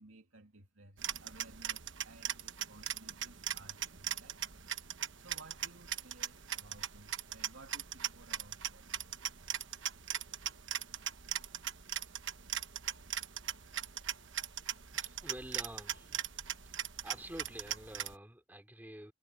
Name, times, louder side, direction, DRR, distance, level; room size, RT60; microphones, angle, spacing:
voice 1, 0.0-4.4 5.2-8.9, right 2 dB, 75° right, 2.8 m, -58 dB
sound 1, 1.0-18.1, right 10 dB, 60° right, 1.2 m, -40 dB
voice 2, 14.9-16.3 16.6-16.8 17.0-19.1, right 1 dB, 10° right, 3.1 m, -48 dB
head